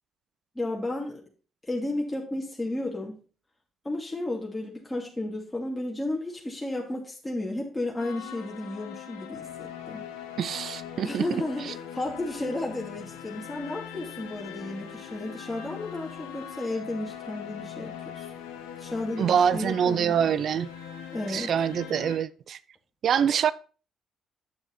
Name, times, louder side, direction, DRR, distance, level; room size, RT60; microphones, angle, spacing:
voice 1, 0.5-1.2 1.6-3.2 3.8-10.0 11.0-18.3 18.8-20.2 21.1-21.5, left 2 dB, 15° left, 2.7 m, -33 dB
sound 1, 8.0-22.2, left 9 dB, 90° left, 1.2 m, -41 dB
voice 2, 10.4-11.2 19.2-20.7 21.3-22.6 23.0-23.5, right 8 dB, 60° right, 0.5 m, -25 dB
9.6 x 6.9 x 4.1 m
hypercardioid pair, 50°, 0 cm